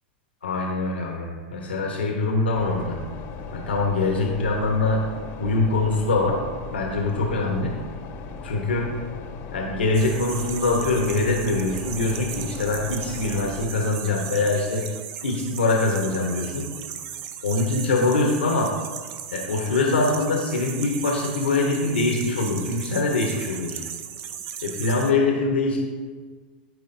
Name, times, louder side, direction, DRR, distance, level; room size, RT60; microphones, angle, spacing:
voice 1, 0.4-3.0 3.5-5.0 5.4-6.4 6.7-7.7 8.4-8.9 9.5-14.8 15.2-16.7 17.4-18.7 19.3-23.8 24.6-25.8, left 3 dB, 85° left, 0 dB, 1.1 m, -23 dB
sound 1, 2.6-13.6, left 4 dB, 45° left, 0.9 m, -37 dB
sound 2, 9.9-25.1, right 9 dB, 50° right, 0.7 m, -37 dB
12.5 x 5.0 x 2.7 m, 1.5 s
hypercardioid pair, 105°, 6 cm